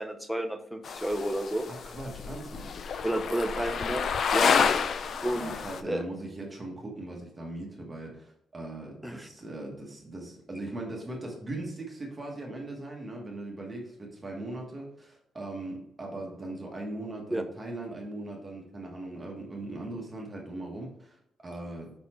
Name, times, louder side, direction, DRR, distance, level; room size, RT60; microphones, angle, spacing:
voice 1, 0.0-1.7 3.0-4.0 4.3-4.5 5.2-5.5 5.8-6.1 9.0-9.3 17.3-17.4, right 1 dB, ahead, 4 dB, 0.7 m, -31 dB
sound 1, 0.8-5.8, left 6 dB, 55° left, 0.4 m, -29 dB
voice 2, 1.7-2.7 5.3-21.9, right 2 dB, 20° right, 0 dB, 1.4 m, -39 dB
5.3 x 4.2 x 4.4 m, 0.75 s
cardioid pair, 130°, 0 cm